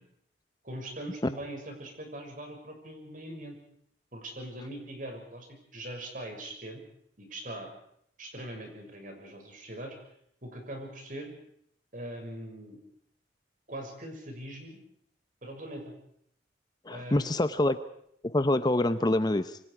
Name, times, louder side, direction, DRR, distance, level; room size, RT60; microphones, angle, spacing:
voice 1, 0.6-3.6 4.1-6.8 7.2-7.7 8.2-10.0 10.4-11.3 11.9-12.8 13.7-14.8 15.4-15.9 16.9-17.4, right 1 dB, 50° right, 4 dB, 6.5 m, -41 dB
voice 2, 16.8-17.8 18.2-19.6, left 1 dB, 25° left, 11 dB, 0.8 m, -26 dB
27.0 x 24.0 x 4.9 m, 0.68 s
head